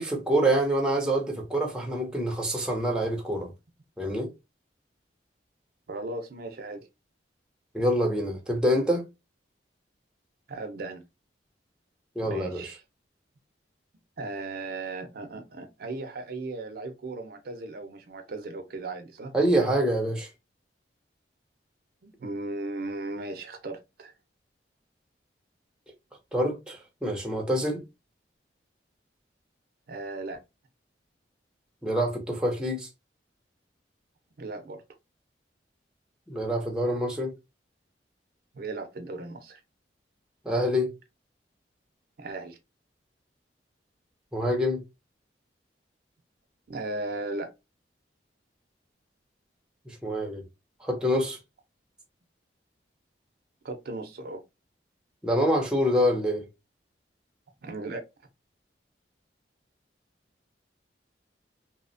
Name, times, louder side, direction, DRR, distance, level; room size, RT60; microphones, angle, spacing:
voice 1, 0.0-3.5 4.0-4.3 7.7-9.0 12.2-12.7 19.3-20.3 26.3-27.8 31.8-32.9 36.3-37.3 40.5-40.9 44.3-44.8 49.9-50.4 50.8-51.4 55.2-56.4, equal, 5° right, 0.5 m, -26 dB
voice 2, 5.9-6.9 10.5-11.0 12.2-12.8 14.2-19.3 22.0-24.1 29.9-30.4 34.4-34.8 38.5-39.6 42.2-42.6 46.7-47.5 53.6-54.4 57.6-58.1, right 2 dB, 55° right, 0.4 m, -36 dB
2.7 x 2.0 x 2.5 m
head